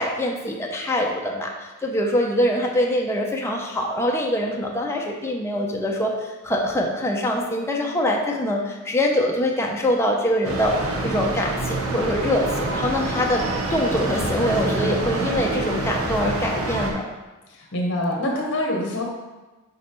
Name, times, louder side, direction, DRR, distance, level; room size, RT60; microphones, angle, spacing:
voice 1, 0.0-17.0, left 1 dB, 10° left, -1 dB, 0.6 m, -24 dB
sound 1, 10.4-16.9, right 2 dB, 75° right, 0.9 m, -26 dB
voice 2, 17.5-19.0, left 1 dB, 60° left, 0 dB, 1.1 m, -25 dB
5.4 x 4.1 x 4.4 m, 1.2 s
head